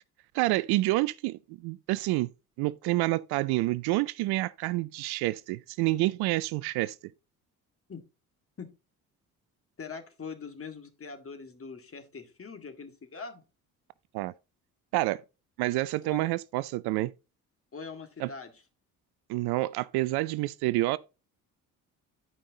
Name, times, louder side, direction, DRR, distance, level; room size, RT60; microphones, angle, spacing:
voice 1, 0.3-2.3 2.6-7.0 14.1-14.3 14.9-15.2 15.6-17.1 18.2-18.3 19.3-21.0, right 19 dB, 60° right, 0.5 m, -28 dB
voice 2, 9.8-13.4 16.0-16.2 17.7-18.5, left 5 dB, 30° left, 2.0 m, -42 dB
9.8 x 5.3 x 3.8 m
hypercardioid pair, 50°, 44 cm